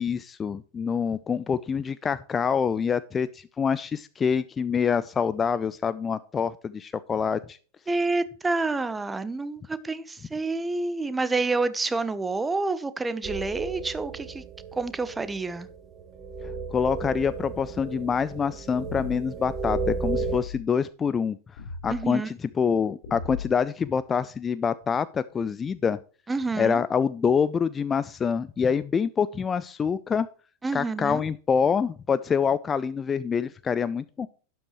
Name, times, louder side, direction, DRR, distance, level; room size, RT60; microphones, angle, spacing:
voice 1, 0.0-7.6 16.4-21.4 21.8-26.0 26.5-30.3 30.7-34.3, left 6 dB, 20° left, 0.5 m, -26 dB
voice 2, 7.9-14.4 14.7-15.7 21.9-22.3 26.3-26.8 30.6-31.2, right 3 dB, 10° right, 0.9 m, -28 dB
sound 1, 13.2-20.4, right 4 dB, 30° right, 1.3 m, -34 dB
sound 2, 18.8-19.4 20.2-20.6 21.6-22.1 23.0-23.7, left 5 dB, 50° left, 4.5 m, -38 dB
12.0 x 11.0 x 3.1 m
figure-of-eight pair, 90°, 0 cm